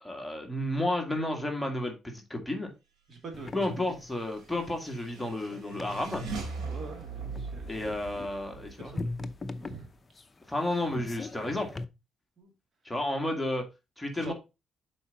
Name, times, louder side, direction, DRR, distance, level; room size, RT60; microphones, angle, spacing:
voice 1, 0.0-2.7 3.5-6.2 7.7-8.9 10.5-11.7 12.9-13.7 14.0-14.3, left 1 dB, 5° left, 1.9 m, -32 dB
voice 2, 3.1-3.5 6.7-7.8 8.8-9.1 9.5-9.9 12.4-12.5 14.1-14.3, right 3 dB, 50° right, 2.3 m, -44 dB
sound 1, 3.3-11.8, left 2 dB, 25° left, 0.7 m, -41 dB
sound 2, 4.2-9.8, right 4 dB, 85° right, 3.4 m, -41 dB
7.0 x 4.9 x 4.1 m
cardioid pair, 90°, 0 cm